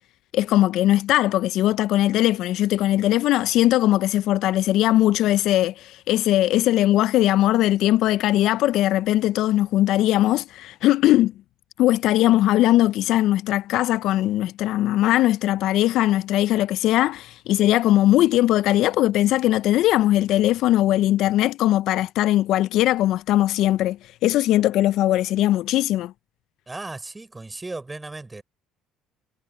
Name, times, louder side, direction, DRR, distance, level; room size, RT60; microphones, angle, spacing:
voice 1, 0.3-11.3 11.8-26.1, left 14 dB, 65° left, 0.4 m, -20 dB
voice 2, 26.7-28.4, right 2 dB, 15° right, 5.4 m, -36 dB
hypercardioid pair, 70°, 0 cm